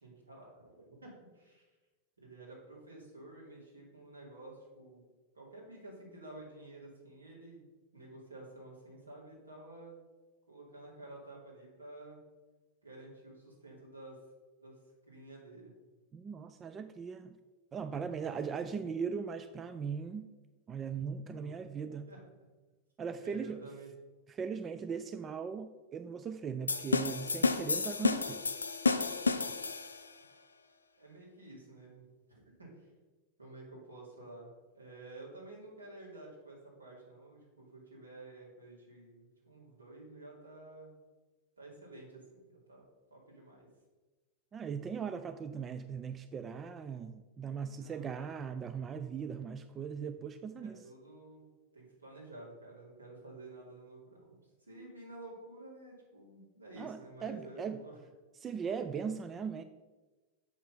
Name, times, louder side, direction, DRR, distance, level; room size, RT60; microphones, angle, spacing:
voice 1, 0.0-1.7 2.2-5.1 5.3-7.7 7.9-10.0 10.5-12.2 12.8-14.2 14.6-14.8 15.1-15.7 18.1-18.6 21.3-22.3 23.2-23.9 31.0-32.9 33.4-40.9 41.6-42.8 43.1-43.7 47.7-48.6 50.6-51.5 51.7-58.0, right 2 dB, 80° right, -4 dB, 2.8 m, -51 dB
voice 2, 16.1-17.4 17.7-20.3 20.7-22.1 23.0-23.7 24.3-28.5 44.5-50.8 56.8-57.8 58.4-59.6, right 6 dB, 25° right, 10 dB, 0.4 m, -39 dB
sound 1, 26.7-30.1, left 4 dB, 75° left, 0.4 m, -31 dB
7.3 x 6.0 x 5.3 m, 1.2 s
figure-of-eight pair, 90°, 0 cm